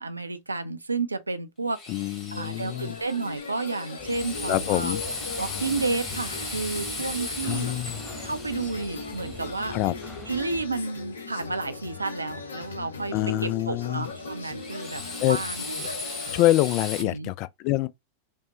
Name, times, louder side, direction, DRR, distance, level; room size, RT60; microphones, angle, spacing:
voice 1, 0.0-5.0 5.4-7.7 8.2-9.7 10.3-15.6 17.0-17.3, right 3 dB, 80° right, 0.5 m, -31 dB
Drill, 1.7-10.6 14.0-17.0, left 3 dB, 25° left, 1.8 m, -37 dB
voice 2, 1.9-3.0 4.5-5.0 7.4-8.0 9.7-9.9 13.1-14.1 15.2-15.4 16.3-17.9, left 16 dB, 40° left, 0.3 m, -25 dB
sound 1, 2.4-16.4, left 4 dB, 70° left, 0.7 m, -39 dB
sound 2, 4.0-10.7, equal, 10° left, 1.3 m, -44 dB
5.2 x 2.1 x 2.9 m
figure-of-eight pair, 90°, 0 cm